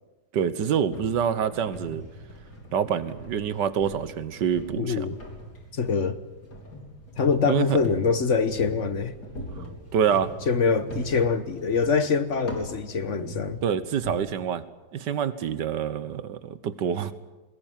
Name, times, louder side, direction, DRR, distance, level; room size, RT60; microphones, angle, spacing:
voice 1, 0.3-2.0 2.7-5.1 7.4-7.8 9.9-10.3 13.6-14.6 14.9-17.1, right 8 dB, 85° right, 1.8 m, -26 dB
sound 1, 0.9-14.2, right 1 dB, 70° left, 4.9 m, -41 dB
voice 2, 4.8-5.2 5.7-6.2 7.2-9.1 10.5-13.6, left 5 dB, 50° left, 1.3 m, -24 dB
22.0 x 20.5 x 9.2 m
omnidirectional pair, 1.8 m